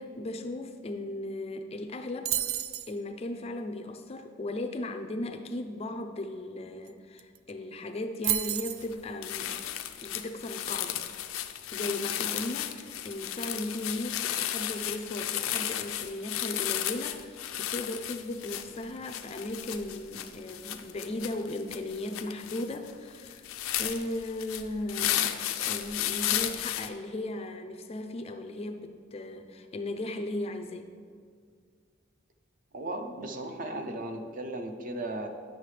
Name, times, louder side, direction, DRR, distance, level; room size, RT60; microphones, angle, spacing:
voice 1, 0.0-2.3 2.9-9.6 10.0-11.0 11.7-23.4 23.8-30.9, left 2 dB, 30° left, 7 dB, 0.4 m, -36 dB
sound 1, 2.3-2.9 6.9-7.0 7.2-7.5 8.2-8.9, right 12 dB, 85° right, 0.4 m, -30 dB
sound 2, 8.8-8.9 9.2-26.9, left 11 dB, 85° left, 0.4 m, -34 dB
voice 2, 32.7-35.3, right 1 dB, 40° right, 5 dB, 0.6 m, -36 dB
9.2 x 6.3 x 3.2 m, 2.1 s
head